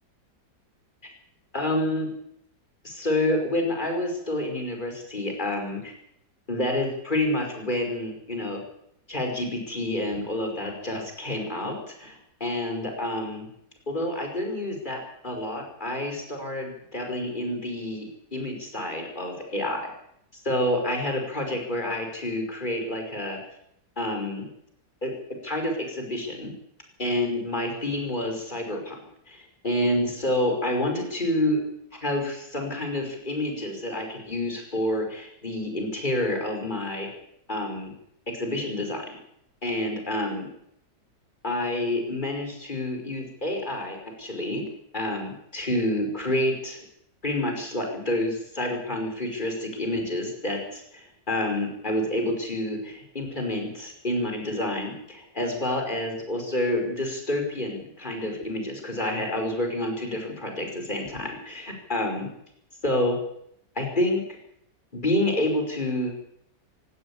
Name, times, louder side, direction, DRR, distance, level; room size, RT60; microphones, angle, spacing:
voice 1, 1.5-2.1 2.8-5.9 6.5-8.6 9.1-13.5 13.9-19.9 20.4-23.4 24.0-24.5 25.0-25.1 25.4-26.5 27.0-29.0 29.3-31.6 32.0-37.1 37.5-37.9 38.3-39.2 39.6-40.5 41.4-44.7 44.9-46.8 47.2-62.3 62.8-63.2 63.8-64.2 64.9-66.3, left 1 dB, 25° left, 2 dB, 5.5 m, -28 dB
18.0 x 17.0 x 8.7 m, 0.73 s
omnidirectional pair, 1.9 m